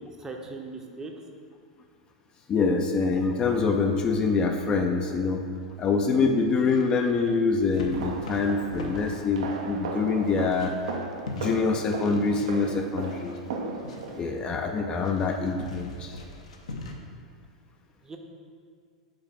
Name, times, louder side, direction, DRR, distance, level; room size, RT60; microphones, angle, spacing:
voice 1, 0.2-1.1 18.0-18.2, right 3 dB, 15° right, 2 dB, 0.7 m, -39 dB
voice 2, 2.5-5.4 5.8-10.7 11.3-13.4 14.1-16.2, left 4 dB, 25° left, 3 dB, 0.4 m, -25 dB
sound 1, 3.5-16.9, left 2 dB, 65° left, 0.8 m, -44 dB
sound 2, 7.9-14.2, right 4 dB, 60° right, 0.6 m, -36 dB
5.2 x 4.0 x 5.8 m, 2.1 s
figure-of-eight pair, 90°, 4 cm